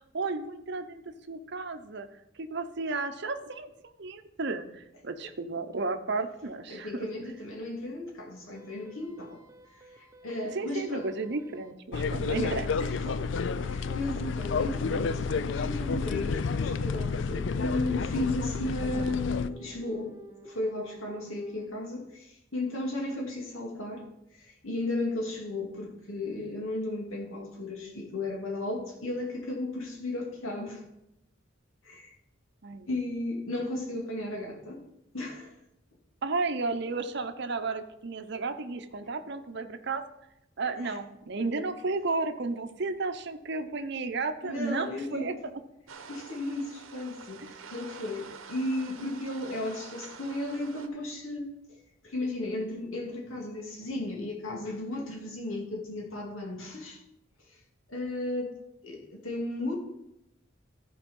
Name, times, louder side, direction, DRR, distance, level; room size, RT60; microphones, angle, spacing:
voice 1, 0.1-1.0 1.3-2.1 2.4-3.7 4.0-7.1 10.5-12.7 12.9-13.1 32.6-32.9 36.2-40.0 40.6-45.3, right 3 dB, 55° right, 8 dB, 0.8 m, -33 dB
sound 1, 5.3-5.4 5.7-5.8 6.2-6.3 6.7-6.8 7.2-7.3 7.6-7.7 8.1-8.2 8.5-21.7, equal, 15° right, 0.7 m, -50 dB
voice 2, 6.7-9.4 10.0-11.1 12.3-13.0 13.6-20.1 20.4-24.1 24.4-30.8 31.8-32.1 32.9-34.8 35.1-35.5 41.6-41.7 44.4-45.5 46.1-51.5 52.0-57.0 57.9-58.5 58.8-59.7, left 2 dB, 80° left, -1 dB, 2.5 m, -34 dB
sound 2, 11.9-19.5, left 5 dB, 60° left, 0.4 m, -30 dB
sound 3, 45.9-50.9, right 5 dB, 80° right, 0.9 m, -47 dB
14.0 x 4.7 x 5.4 m, 0.85 s
head